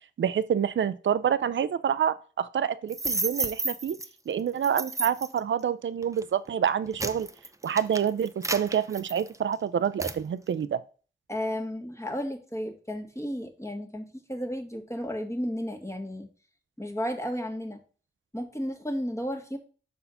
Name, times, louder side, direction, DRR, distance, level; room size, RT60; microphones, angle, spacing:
voice 1, 0.2-4.0 4.3-7.3 7.6-10.8, right 8 dB, 75° right, 0.5 m, -27 dB
sound 1, 2.9-4.1 4.6-5.4 6.0-6.2 6.7-9.5 10.0-10.2, right 2 dB, 15° right, 0.7 m, -32 dB
voice 2, 11.3-16.3 16.8-17.8 18.3-19.6, equal, 15° left, 1.6 m, -33 dB
5.5 x 4.3 x 5.6 m
cardioid pair, 40°, 20 cm